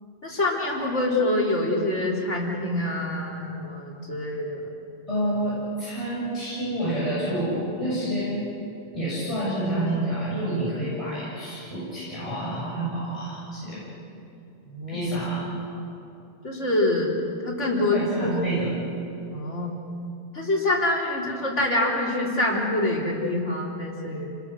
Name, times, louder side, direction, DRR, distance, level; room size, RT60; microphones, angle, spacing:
voice 1, 0.2-4.6 14.7-15.1 16.4-17.2 17.4-18.3 19.3-19.8 20.3-24.3, left 1 dB, 90° left, -3 dB, 4.1 m, -25 dB
voice 2, 5.1-8.5 8.9-13.8 14.9-15.5 17.9-18.7, right 1 dB, 30° left, -9 dB, 7.6 m, -28 dB
29.5 x 21.0 x 6.3 m, 2.8 s
omnidirectional pair, 1.2 m